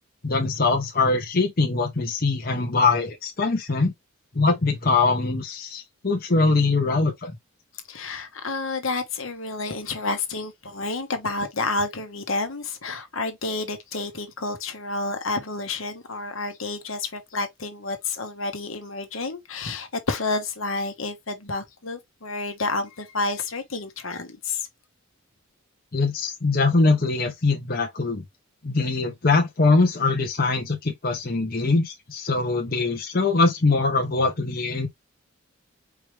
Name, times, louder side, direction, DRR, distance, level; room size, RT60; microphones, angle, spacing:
voice 1, 0.2-3.9 4.3-7.3 25.9-28.2 28.6-34.9, left 3 dB, 45° left, 0.9 m, -22 dB
voice 2, 7.9-24.7, left 3 dB, 70° left, 1.3 m, -30 dB
4.8 x 3.2 x 3.3 m
head